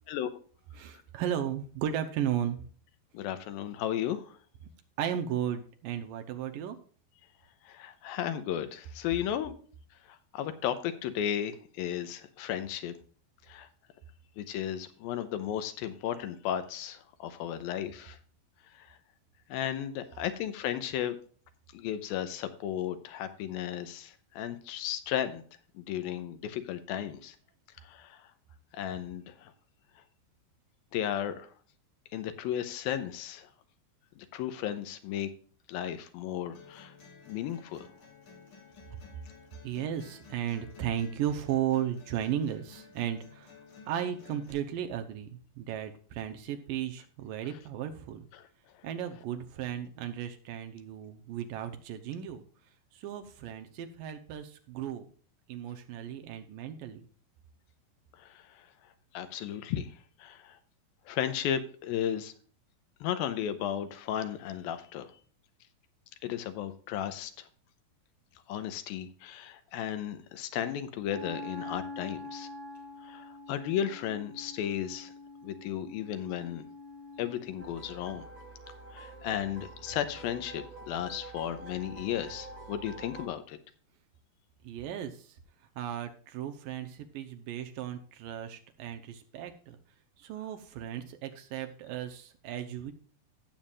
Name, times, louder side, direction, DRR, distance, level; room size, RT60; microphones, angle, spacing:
voice 1, 0.8-2.6 5.0-6.8 39.6-43.6 43.9-48.3 48.8-52.4 52.9-55.1 55.5-57.0 84.6-85.3 85.8-89.8 90.2-92.9, right 10 dB, 75° right, 6 dB, 2.3 m, -35 dB
voice 2, 3.1-4.4 7.7-9.5 10.1-12.9 13.5-13.7 14.4-18.2 18.7-19.0 19.5-21.2 21.7-25.4 25.7-27.4 27.8-28.2 28.7-29.5 30.9-31.5 32.1-33.5 34.2-35.3 35.7-36.9 37.3-37.9 58.2-58.7 59.1-59.9 60.2-60.6 61.1-62.3 63.0-65.1 66.2-67.5 68.5-72.5 73.0-75.1 75.4-76.6 77.2-78.2 78.9-83.6, left 10 dB, 80° left, 10 dB, 2.5 m, -34 dB
sound 1, 36.5-44.5, left 5 dB, 60° left, 4.0 m, -53 dB
Wind instrument woodwind instrument, 71.0-77.7, left 2 dB, 10° left, 1.7 m, -45 dB
sound 2, 77.6-83.3, right 2 dB, 30° right, 3.0 m, -46 dB
16.5 x 7.2 x 2.5 m, 0.44 s
omnidirectional pair, 4.4 m